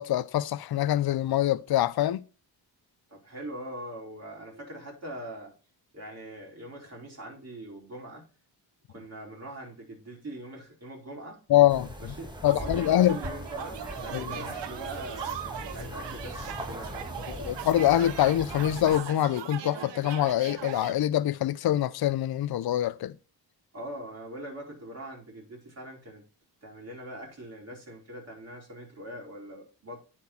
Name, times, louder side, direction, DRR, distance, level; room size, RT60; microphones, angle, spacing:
voice 1, 0.0-2.2 11.5-12.1 12.4-13.2 14.1-14.4 17.3-23.1, left 12 dB, 60° left, 0.6 m, -25 dB
voice 2, 3.1-5.5 5.9-8.2 8.9-11.4 12.0-17.1 23.7-26.2 26.6-30.0, right 1 dB, 35° right, 4.5 m, -42 dB
sound 1, 11.7-19.0, equal, 10° right, 1.7 m, -40 dB
sound 2, 12.5-20.9, right 10 dB, 85° right, 1.0 m, -40 dB
9.5 x 4.5 x 5.9 m
cardioid pair, 85°, 42 cm